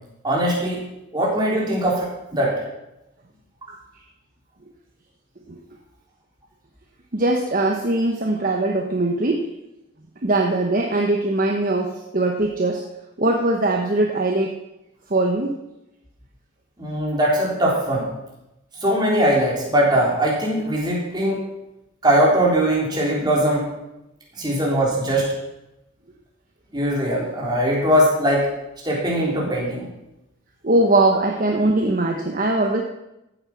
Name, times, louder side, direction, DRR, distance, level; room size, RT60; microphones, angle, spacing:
voice 1, 0.2-0.8 1.1-2.5 16.8-18.1 18.8-21.4 22.0-23.7 24.4-25.3 26.7-28.5 28.8-29.9, right 1 dB, 20° right, -4 dB, 3.7 m, -20 dB
voice 2, 7.1-9.5 10.2-12.8 13.2-14.5 15.1-15.6 30.6-32.8, right 2 dB, 40° right, 2 dB, 1.0 m, -21 dB
14.5 x 8.4 x 5.9 m, 0.92 s
head